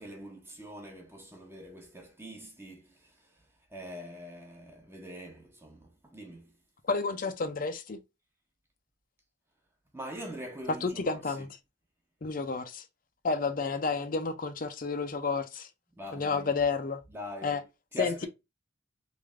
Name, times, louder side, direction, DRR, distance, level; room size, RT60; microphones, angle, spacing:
voice 1, 0.0-6.6 9.9-11.5 15.9-16.6 17.1-17.7 17.9-18.3, left 1 dB, 15° right, 0.8 m, -43 dB
voice 2, 6.8-8.0 10.8-11.5 12.2-12.9 13.2-15.7 16.1-17.0 17.4-17.6 18.0-18.3, left 4 dB, 45° left, 0.6 m, -31 dB
3.2 x 2.6 x 3.6 m
head